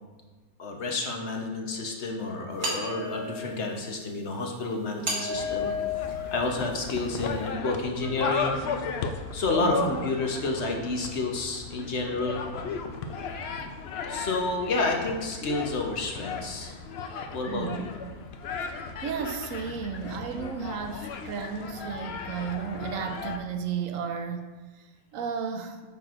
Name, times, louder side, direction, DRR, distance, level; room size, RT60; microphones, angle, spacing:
voice 1, 0.6-5.7 6.3-8.6 9.3-12.4 14.1-16.7 17.3-17.9, left 2 dB, 50° left, 1 dB, 1.0 m, -30 dB
sound 1, 2.6-3.7 5.0-6.9, left 3 dB, 90° right, 2.2 m, -32 dB
sound 2, 5.3-23.4, left 5 dB, 70° left, 0.6 m, -35 dB
voice 2, 9.6-9.9 17.4-17.9 18.6-18.7 19.0-24.5 24.8-24.9 25.1-25.8, right 6 dB, 70° right, 7 dB, 0.9 m, -33 dB
9.1 x 6.0 x 2.5 m, 1.3 s
omnidirectional pair, 1.6 m